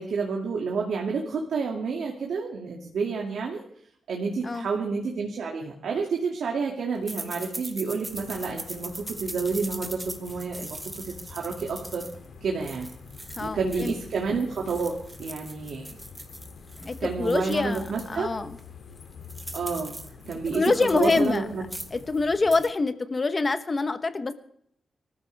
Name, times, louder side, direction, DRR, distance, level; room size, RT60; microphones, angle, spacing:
voice 1, 0.0-3.6 4.1-12.0 12.4-12.9 13.4-14.9 15.2-15.9 17.0-18.3 19.5-19.9 20.2-21.6, right 4 dB, 75° right, 0 dB, 2.4 m, -29 dB
sound 1, 7.1-14.2 14.5-18.2 18.6-18.7 18.9-21.4 21.6-22.1 22.4-22.7, right 1 dB, 10° right, 1.3 m, -41 dB
sound 2, 8.1-22.6, left 5 dB, 85° left, 2.8 m, -46 dB
voice 2, 13.4-13.9 16.9-18.6 20.5-21.4 21.9-24.3, left 3 dB, 25° left, 9 dB, 1.2 m, -25 dB
24.0 x 14.0 x 3.5 m, 0.68 s
wide cardioid pair, 160°, 0 cm